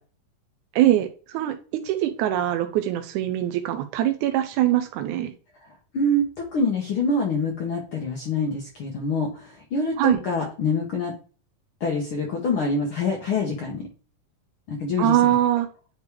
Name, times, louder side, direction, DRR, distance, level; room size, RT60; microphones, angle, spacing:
voice 1, 0.7-1.6 1.8-5.3 10.0-10.2 15.0-15.7, right 13 dB, 80° right, 7 dB, 1.8 m, -22 dB
voice 2, 5.6-6.2 6.5-11.1 11.8-13.9 14.7-15.3, left 2 dB, 80° left, 0 dB, 1.2 m, -26 dB
9.6 x 3.2 x 3.4 m, 0.37 s
omnidirectional pair, 3.9 m